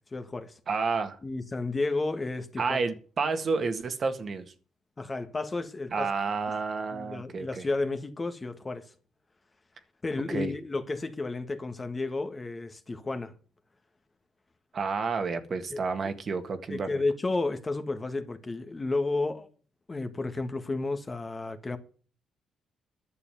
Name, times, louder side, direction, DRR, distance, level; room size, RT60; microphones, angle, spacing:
voice 1, 0.1-0.6 1.2-2.8 5.0-6.1 6.9-8.9 10.0-13.3 15.7-15.8 16.7-19.5 19.9-21.8, left 3 dB, 25° left, 1.7 m, -32 dB
voice 2, 0.7-1.2 2.6-4.5 5.9-7.7 10.3-10.5 14.7-16.9, right 4 dB, 45° right, 1.8 m, -30 dB
11.0 x 6.8 x 9.1 m
cardioid pair, 90°, 0 cm